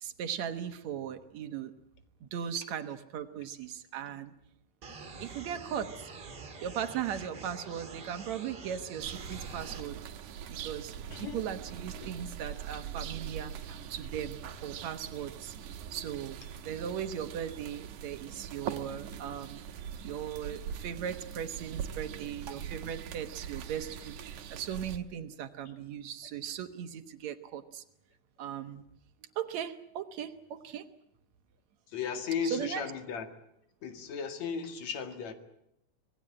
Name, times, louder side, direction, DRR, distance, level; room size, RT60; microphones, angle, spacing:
voice 1, 0.0-1.7 2.2-4.3 5.2-5.9 6.6-10.0 10.5-13.5 13.9-15.6 15.9-16.4 16.6-19.7 20.0-27.8 28.4-28.8 29.4-30.8 32.5-32.8, right 9 dB, 70° right, 9 dB, 2.4 m, -38 dB
sound 1, 4.8-9.8, right 4 dB, 35° right, 2.6 m, -46 dB
sound 2, 9.0-25.0, right 8 dB, 85° right, 2.7 m, -42 dB
voice 2, 11.1-11.4 22.2-22.3 31.9-33.3 33.8-35.3, left 6 dB, 65° left, 7 dB, 3.2 m, -35 dB
25.5 x 19.0 x 8.8 m, 0.79 s
omnidirectional pair, 3.4 m